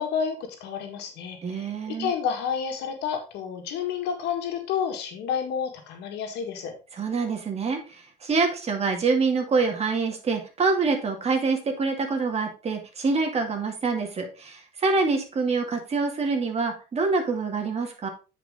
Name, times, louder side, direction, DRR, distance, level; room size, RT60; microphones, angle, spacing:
voice 1, 0.0-6.7, left 7 dB, 85° left, 4 dB, 1.9 m, -30 dB
voice 2, 1.4-2.1 6.9-18.1, right 4 dB, 40° right, 3 dB, 2.3 m, -26 dB
9.3 x 5.0 x 3.7 m, 0.32 s
cardioid pair, 110°, 17 cm